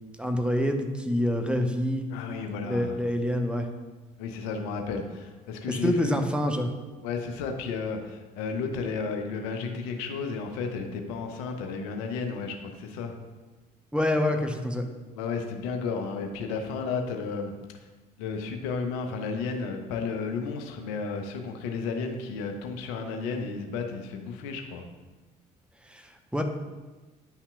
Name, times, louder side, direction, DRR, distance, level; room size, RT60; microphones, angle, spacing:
voice 1, 0.2-2.0 2.6-3.7 5.8-6.7 13.9-14.8 25.9-26.4, left 1 dB, 5° right, 4 dB, 0.8 m, -26 dB
voice 2, 2.1-3.0 4.2-6.2 7.0-13.2 15.2-17.5 18.2-24.8, left 5 dB, 65° left, 5 dB, 0.8 m, -33 dB
9.7 x 5.6 x 2.3 m, 1.2 s
figure-of-eight pair, 55°, 21 cm